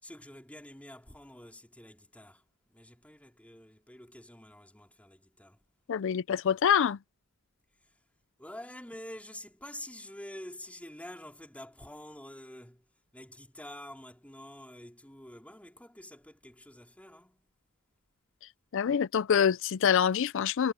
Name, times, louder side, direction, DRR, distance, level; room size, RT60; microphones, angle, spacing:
voice 1, 0.0-5.7 8.4-12.8 13.1-17.5, left 1 dB, 5° left, 3.7 m, -48 dB
voice 2, 5.9-7.0 18.7-20.7, left 8 dB, 65° left, 0.4 m, -25 dB
head